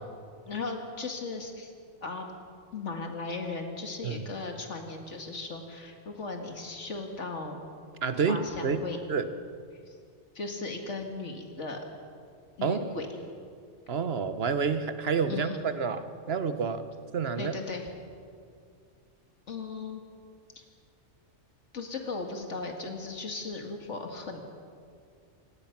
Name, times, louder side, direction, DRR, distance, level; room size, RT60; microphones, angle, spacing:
voice 1, 0.4-1.7 2.0-2.3 2.7-7.6 8.3-9.0 9.9-10.0 10.3-11.8 12.6-13.1 15.3-15.6 17.4-17.9 19.5-20.0 21.7-24.4, left 3 dB, 80° left, 3 dB, 2.3 m, -37 dB
voice 2, 8.0-8.8 9.1-9.3 12.6-13.0 13.9-16.9 17.1-17.6, right 5 dB, 60° right, 10 dB, 1.3 m, -29 dB
27.5 x 18.0 x 6.0 m, 2.3 s
omnidirectional pair, 1.2 m